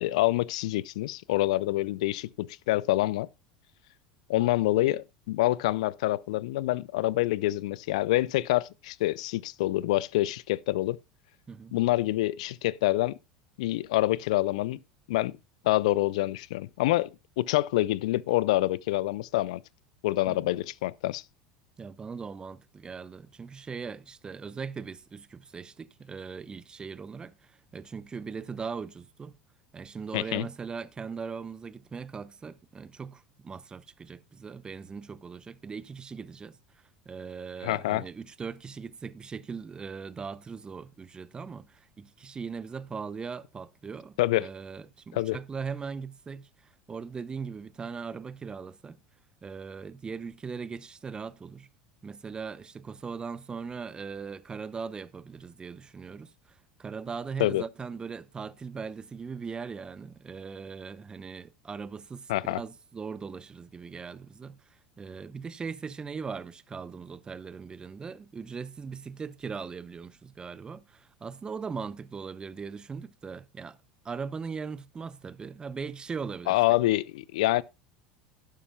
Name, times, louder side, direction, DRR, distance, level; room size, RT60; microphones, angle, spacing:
voice 1, 0.0-3.3 4.3-11.0 11.7-13.2 13.6-14.8 15.1-15.4 15.6-19.6 20.0-21.2 30.1-30.5 37.6-38.0 44.2-44.5 45.1-45.4 57.4-57.6 62.3-62.6 76.5-77.6, left 17 dB, 70° left, 0.4 m, -26 dB
voice 2, 21.8-29.3 29.7-36.6 37.1-49.0 49.4-51.7 52.0-73.8 74.0-76.6, right 5 dB, 25° right, 0.7 m, -39 dB
11.5 x 11.5 x 2.2 m
hypercardioid pair, 80°, 4 cm